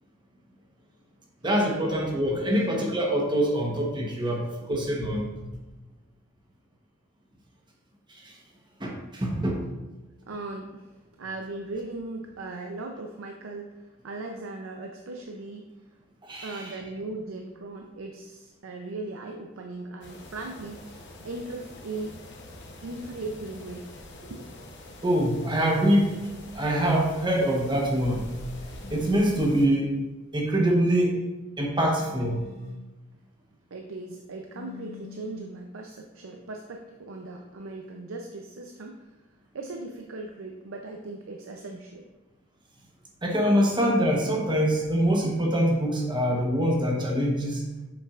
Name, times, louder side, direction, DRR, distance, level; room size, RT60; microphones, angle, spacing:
voice 1, 1.4-5.4 8.2-8.3 8.8-9.7 16.2-16.7 25.0-26.2 26.5-28.3 28.9-29.9 30.3-31.2 31.6-32.4 43.2-47.6, equal, 20° right, -1 dB, 1.0 m, -24 dB
voice 2, 10.3-15.6 16.4-22.2 22.8-23.9 24.2-24.4 33.7-39.2 39.5-42.1, right 2 dB, 70° right, 3 dB, 0.5 m, -38 dB
sound 1, 20.0-29.7, left 1 dB, 55° left, 0.9 m, -44 dB
sound 2, 28.8-29.4 31.9-32.9 34.5-35.5, left 5 dB, 30° left, 1.9 m, -45 dB
7.3 x 5.7 x 2.4 m, 1.1 s
head